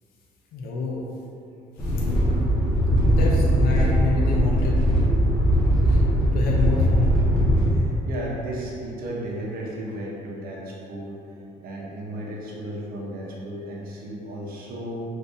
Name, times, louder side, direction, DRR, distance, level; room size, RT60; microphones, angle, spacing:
voice 1, 0.5-1.0 1.8-2.1 3.0-4.8 5.9-6.0 6.3-7.2, left 4 dB, 65° left, -2 dB, 0.4 m, -28 dB
sound 1, 1.8-7.7, equal, 5° left, 0.9 m, -20 dB
voice 2, 7.7-11.2 11.6-15.0, right 1 dB, 60° right, -4 dB, 0.7 m, -34 dB
3.6 x 2.5 x 2.6 m, 2.7 s
cardioid pair, 110°, 17 cm